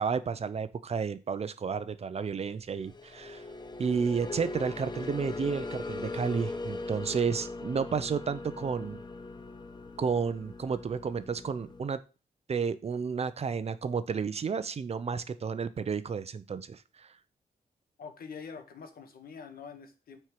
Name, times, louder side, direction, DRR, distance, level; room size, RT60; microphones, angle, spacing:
voice 1, 0.0-3.4 3.8-9.0 10.0-12.0 12.5-17.1, right 6 dB, 45° right, 13 dB, 0.7 m, -32 dB
sound 1, 2.8-11.8, left 3 dB, 30° left, 0.9 m, -40 dB
voice 2, 18.0-20.2, left 5 dB, 85° left, 6 dB, 1.7 m, -45 dB
9.3 x 4.5 x 4.9 m, 0.32 s
wide cardioid pair, 140°, 15 cm